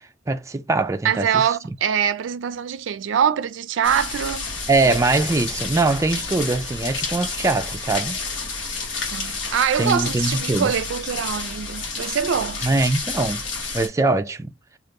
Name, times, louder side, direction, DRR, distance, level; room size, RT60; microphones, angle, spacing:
voice 1, 0.3-1.4 4.7-8.2 9.8-10.7 12.6-13.4 13.7-14.5, right 3 dB, 15° right, 0.3 m, -22 dB
voice 2, 1.0-4.5 4.8-4.9 9.1-12.6, right 8 dB, 90° right, 0.4 m, -23 dB
sound 1, 3.8-13.9, left 4 dB, 80° left, 1.1 m, -30 dB
3.5 x 2.4 x 2.6 m
head